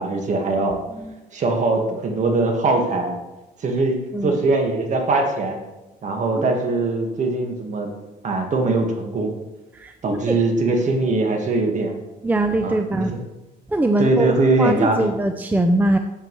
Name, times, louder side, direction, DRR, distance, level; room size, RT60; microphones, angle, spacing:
voice 1, 0.0-0.8 1.3-3.1 3.6-5.6 6.0-7.9 8.2-9.3 10.0-12.0 12.6-13.2 14.0-15.1, right 3 dB, 45° right, 3 dB, 1.7 m, -21 dB
voice 2, 12.2-13.1 13.7-16.0, right 1 dB, 10° right, 7 dB, 0.5 m, -22 dB
13.0 x 7.4 x 3.2 m, 1.1 s
cardioid pair, 110°, 17 cm